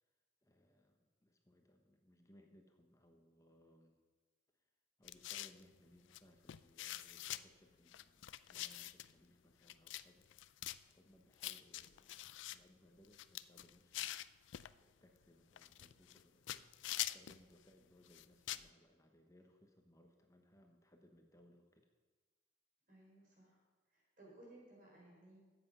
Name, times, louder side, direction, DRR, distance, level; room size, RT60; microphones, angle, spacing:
voice 1, 0.4-4.0 5.0-10.5 10.9-12.2 12.5-14.1 14.8-16.7 17.1-21.9, equal, 15° left, 4 dB, 1.0 m, -67 dB
sound 1, 5.0-5.6 6.1-6.2 6.5-7.4 7.9-9.1 9.7-10.0 10.3-10.8 11.4-12.6 13.0-14.7 15.6-16.2 16.5-17.4 18.1-18.7, left 14 dB, 75° left, 0.4 m, -45 dB
voice 2, 22.9-23.6 23.9-25.4, right 1 dB, 45° right, -3 dB, 4.5 m, -60 dB
13.5 x 8.0 x 5.5 m, 1.3 s
head